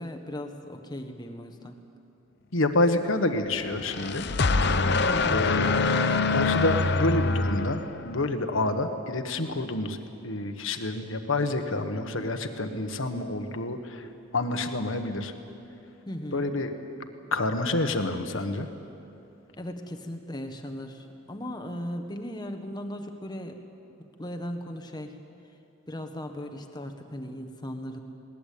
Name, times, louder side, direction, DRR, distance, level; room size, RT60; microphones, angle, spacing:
voice 1, 0.0-1.8 5.1-5.5 16.1-16.5 19.6-23.6 24.0-25.2 25.9-28.0, equal, 20° left, 6 dB, 1.4 m, -37 dB
voice 2, 2.5-4.3 5.3-5.8 6.3-14.1 14.3-15.3 16.3-16.7 17.3-18.7, left 2 dB, 70° left, 7 dB, 1.5 m, -28 dB
sound 1, 3.7-8.3, left 3 dB, 55° left, 0.8 m, -25 dB
20.5 x 19.5 x 8.6 m, 2.8 s
head